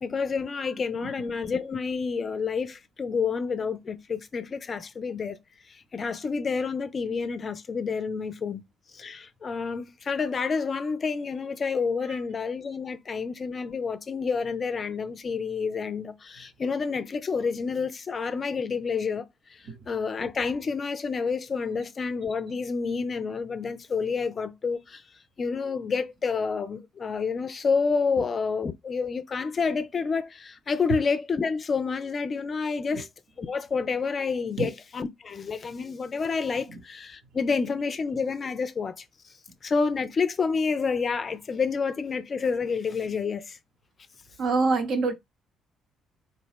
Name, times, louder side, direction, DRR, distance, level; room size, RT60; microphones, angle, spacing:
voice 1, 0.0-5.4 5.9-8.6 8.9-19.3 19.9-25.0 25.4-33.1 33.4-39.0 39.6-43.6, left 5 dB, 40° left, 0.4 m, -29 dB
voice 2, 44.4-45.1, right 3 dB, 55° right, 0.8 m, -26 dB
3.8 x 2.2 x 3.4 m
figure-of-eight pair, 45°, 0 cm